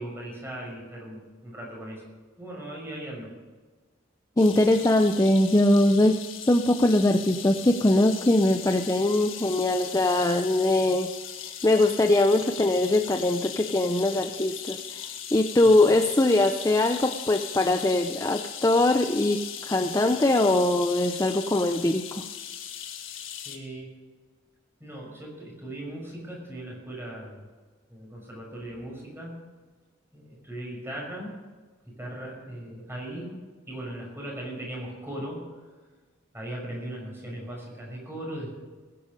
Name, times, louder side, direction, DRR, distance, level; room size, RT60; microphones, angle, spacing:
voice 1, 0.0-2.0 2.4-3.3 15.8-15.9 23.4-23.9 24.8-27.4 27.9-29.3 30.1-31.4 31.9-33.3 33.7-35.4 36.3-38.6, right 1 dB, 10° right, -2 dB, 6.1 m, -38 dB
sound 1, 4.4-23.6, left 9 dB, 85° left, 1.7 m, -39 dB
voice 2, 4.4-6.2 6.4-11.1 11.6-22.3, left 1 dB, 15° left, 6 dB, 0.6 m, -22 dB
20.0 x 10.5 x 5.2 m, 1.3 s
head